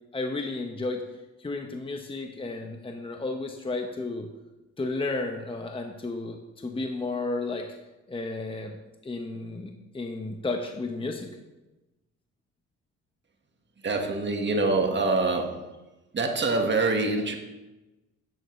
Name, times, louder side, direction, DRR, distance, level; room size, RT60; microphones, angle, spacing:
voice 1, 0.1-1.0 1.4-4.3 4.8-7.7 8.1-8.8 9.0-11.3, left 3 dB, 20° left, 3 dB, 1.0 m, -32 dB
voice 2, 13.8-15.6 16.1-17.4, right 3 dB, 35° right, 3 dB, 1.7 m, -25 dB
11.0 x 9.2 x 3.2 m, 1.0 s
cardioid pair, 90°, 30 cm